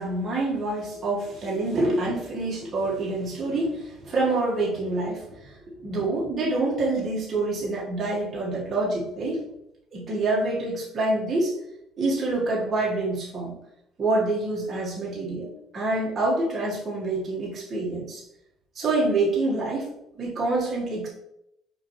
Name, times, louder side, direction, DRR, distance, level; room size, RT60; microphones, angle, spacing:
voice 1, 0.0-5.5 5.8-9.4 9.9-11.5 12.0-13.5 14.0-15.5 15.7-18.2 18.8-19.9 20.2-21.1, right 2 dB, 30° right, -5 dB, 1.6 m, -26 dB
6.0 x 5.3 x 3.1 m, 0.81 s
cardioid pair, 135°, 0 cm